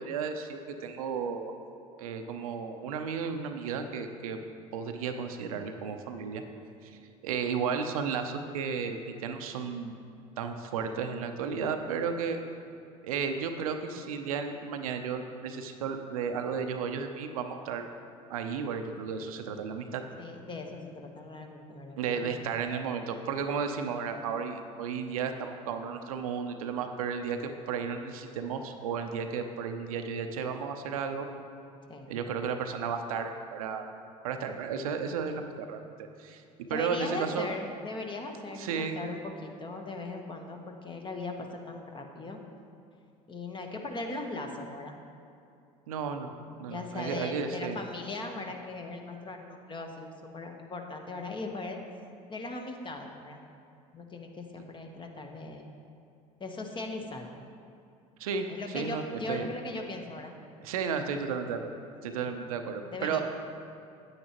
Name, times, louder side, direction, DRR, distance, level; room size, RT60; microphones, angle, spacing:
voice 1, 0.0-1.6 2.0-4.4 4.7-6.4 6.8-7.0 7.2-9.9 10.4-12.4 13.0-17.9 18.3-20.0 22.0-31.3 32.1-33.9 34.2-35.9 36.2-36.4 36.7-37.5 38.6-39.0 45.9-46.3 46.6-47.8 58.2-58.5 58.7-59.5 60.6-61.7 62.0-63.2, right 6 dB, 75° right, 6 dB, 0.6 m, -33 dB
voice 2, 20.2-22.5 31.9-32.2 35.3-35.5 36.7-42.4 43.3-45.0 46.5-51.8 52.3-53.4 53.9-55.6 56.4-57.3 58.5-60.3 62.2-62.4 62.8-63.2, left 2 dB, 25° left, 3 dB, 1.1 m, -39 dB
9.6 x 8.7 x 3.0 m, 2.6 s
hypercardioid pair, 70°, 18 cm